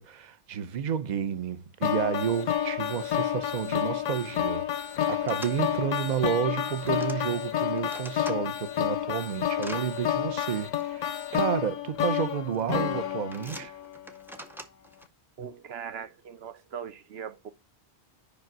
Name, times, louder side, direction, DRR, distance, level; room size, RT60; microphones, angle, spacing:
voice 1, 0.0-13.7, right 8 dB, 50° right, 0.7 m, -31 dB
sound 1, 1.8-14.0, left 10 dB, 55° left, 0.5 m, -30 dB
sound 2, 4.5-4.6 5.0-5.5 6.5-7.2 7.6-8.4 8.9-9.8 10.8-10.9 11.9-12.2 12.5-12.9 13.3-15.1, equal, 5° right, 0.5 m, -45 dB
voice 2, 15.4-17.5, right 7 dB, 70° right, 1.0 m, -40 dB
5.3 x 5.2 x 6.0 m
omnidirectional pair, 1.1 m